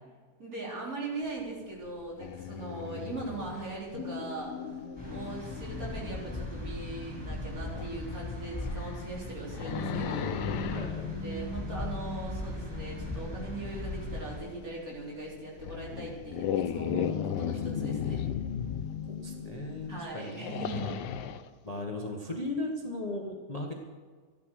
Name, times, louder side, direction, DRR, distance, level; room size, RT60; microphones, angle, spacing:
voice 1, 0.4-4.5 5.1-10.4 11.1-18.3 19.9-21.0, right 2 dB, 55° right, -4 dB, 4.1 m, -40 dB
sound 1, 1.2-20.0, left 5 dB, 60° left, 1.6 m, -41 dB
sound 2, 2.2-3.8 6.8-6.9 7.7-7.9 8.5-10.9 14.7-14.8 15.6-19.0 20.2-21.5, left 9 dB, 80° left, 1.3 m, -35 dB
sound 3, 5.0-14.4, left 2 dB, 5° right, 5.9 m, -39 dB
voice 2, 10.7-11.1 19.1-20.5 21.6-23.7, left 2 dB, 25° left, 1 dB, 1.3 m, -36 dB
13.5 x 11.5 x 6.4 m, 1.5 s
omnidirectional pair, 1.8 m